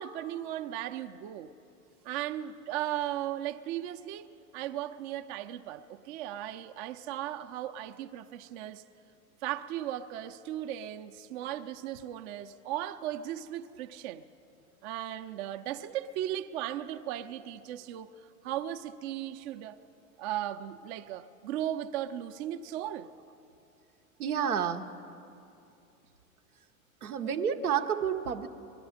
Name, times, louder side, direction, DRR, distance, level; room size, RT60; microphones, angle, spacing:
voice 1, 0.0-1.5 2.0-4.3 4.5-8.8 9.4-14.2 14.8-18.1 18.4-19.8 20.2-23.1, right 12 dB, 50° right, 7 dB, 0.6 m, -36 dB
voice 2, 24.2-24.9 27.0-28.5, right 8 dB, 90° right, 7 dB, 0.8 m, -30 dB
20.5 x 12.5 x 5.0 m, 2.7 s
hypercardioid pair, 100°, 43 cm